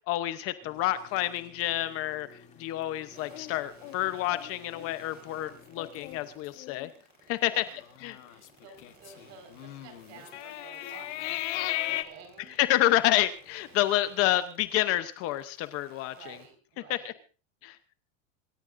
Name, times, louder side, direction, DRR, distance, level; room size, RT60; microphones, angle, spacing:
voice 1, 0.1-6.9 7.3-7.6 8.0-8.2 12.6-16.4 16.9-17.1 17.6-17.8, left 14 dB, 35° left, 12 dB, 0.8 m, -28 dB
sound 1, 0.6-6.3, left 6 dB, 20° left, 2.8 m, -55 dB
sound 2, 3.1-16.5, right 3 dB, 25° right, 5.8 m, -56 dB
sound 3, 3.3-5.0 5.4-5.5 5.8-6.2 6.6-6.9 7.8-12.0, left 16 dB, 65° left, 1.5 m, -37 dB
voice 2, 7.3-7.8 8.2-12.6 16.0-17.1, right 5 dB, 45° right, 5 dB, 5.0 m, -52 dB
26.5 x 14.0 x 2.6 m, 0.35 s
supercardioid pair, 160°, 38 cm